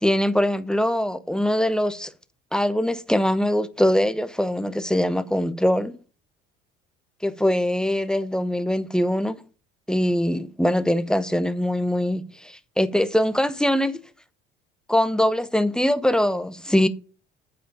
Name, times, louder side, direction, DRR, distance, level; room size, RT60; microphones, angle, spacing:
voice 1, 0.0-2.1 2.5-6.0 7.2-9.4 9.9-14.0 14.9-16.9, left 1 dB, ahead, 0.9 m, -22 dB
8.7 x 5.1 x 6.6 m
hypercardioid pair, 60°, 31 cm